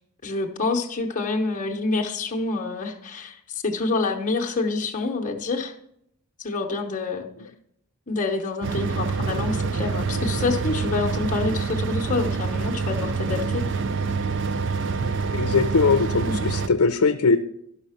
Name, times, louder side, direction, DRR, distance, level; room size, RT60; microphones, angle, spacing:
voice 1, 0.2-5.7 6.4-7.3 8.1-13.6 16.2-16.4, left 3 dB, 35° left, 1 dB, 0.9 m, -27 dB
sound 1, 8.6-16.7, right 4 dB, 55° right, 0.5 m, -26 dB
voice 2, 15.3-17.4, left 4 dB, 85° left, 8 dB, 0.6 m, -20 dB
12.5 x 5.7 x 5.7 m, 0.74 s
head